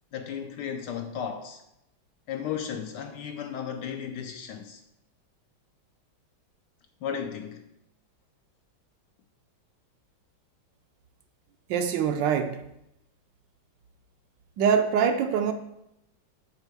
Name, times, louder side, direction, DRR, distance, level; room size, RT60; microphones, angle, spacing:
voice 1, 0.1-1.6 2.3-4.8 7.0-7.6, left 8 dB, 70° left, 1.1 m, -34 dB
voice 2, 11.7-12.6 14.6-15.5, right 7 dB, 70° right, 1.2 m, -24 dB
8.2 x 3.7 x 6.7 m
omnidirectional pair, 2.2 m